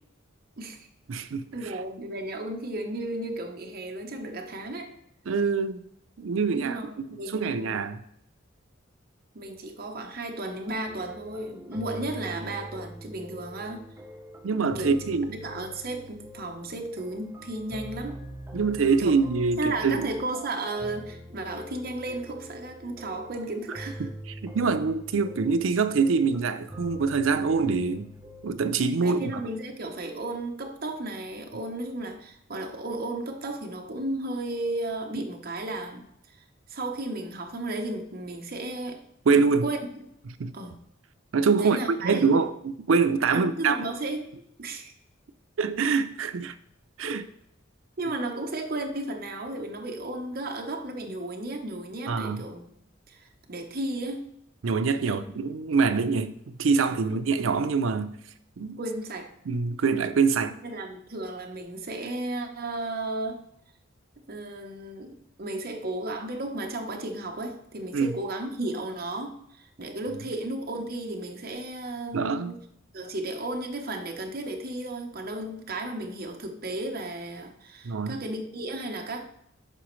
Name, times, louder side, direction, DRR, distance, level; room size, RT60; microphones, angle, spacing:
voice 1, 0.6-0.9 1.5-4.9 6.5-7.8 9.3-13.9 14.8-15.0 15.3-18.2 19.0-19.1 19.6-24.1 29.0-36.4 36.7-39.0 39.6-39.8 40.5-40.8 41.6-42.4 43.3-44.3 44.6-44.9 47.0-47.2 48.0-52.8 53.1-54.3 55.0-55.2 56.9-57.1 58.8-59.3 60.4-63.4 64.3-72.6 72.9-79.2, right 2 dB, 45° right, 0.9 m, -34 dB
voice 2, 1.1-1.5 5.3-5.8 6.2-8.0 14.4-15.4 18.5-20.1 24.0-24.1 24.4-28.1 28.4-29.4 39.3-39.7 40.4-40.5 41.3-41.8 42.0-43.8 45.6-46.5 47.0-47.2 52.1-52.4 54.6-58.1 58.6-58.8 59.5-60.6 67.9-68.2 72.1-72.5 77.8-78.2, right 5 dB, 80° right, 0.5 m, -25 dB
sound 1, 10.9-28.6, equal, 15° right, 0.7 m, -44 dB
11.0 x 4.1 x 3.1 m
head